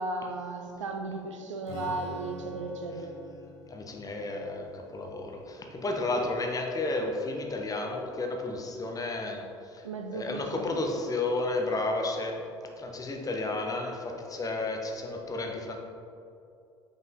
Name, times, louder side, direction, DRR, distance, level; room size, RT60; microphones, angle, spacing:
voice 1, 0.0-3.1 9.8-10.8, right 2 dB, 80° right, 4 dB, 0.6 m, -35 dB
Strum, 1.6-7.3, left 3 dB, 50° left, 1.4 m, -47 dB
voice 2, 3.7-9.4 9.7-9.8 10.1-12.4 12.8-15.8, left 2 dB, 20° left, 2 dB, 0.9 m, -32 dB
5.9 x 5.4 x 3.8 m, 2.6 s
figure-of-eight pair, 65°, 16 cm